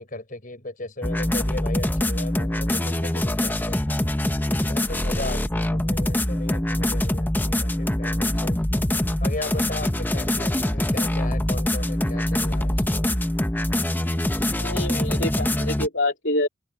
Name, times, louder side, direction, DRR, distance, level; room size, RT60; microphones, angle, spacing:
voice 1, 0.0-3.8 4.7-8.6 9.2-13.1, left 2 dB, 45° left, 5.9 m, -36 dB
sound 1, 1.0-15.9, left 1 dB, 10° left, 0.7 m, -24 dB
voice 2, 14.5-16.5, left 2 dB, 65° left, 3.2 m, -26 dB
head